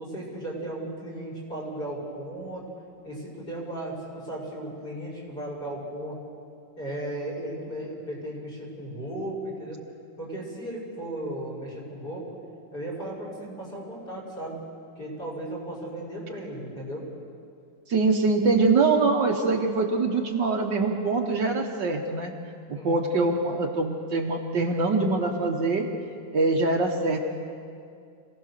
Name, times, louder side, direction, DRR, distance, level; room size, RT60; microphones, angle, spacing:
voice 1, 0.0-2.6 3.0-6.2 6.8-9.8 10.2-12.3 12.7-14.6 15.0-17.0 22.7-23.1, right 1 dB, 45° left, -3 dB, 6.3 m, -35 dB
voice 2, 17.9-22.3 22.7-25.9 26.3-27.2, right 3 dB, 60° right, 2 dB, 1.9 m, -24 dB
26.0 x 17.0 x 6.7 m, 2.4 s
omnidirectional pair, 2.3 m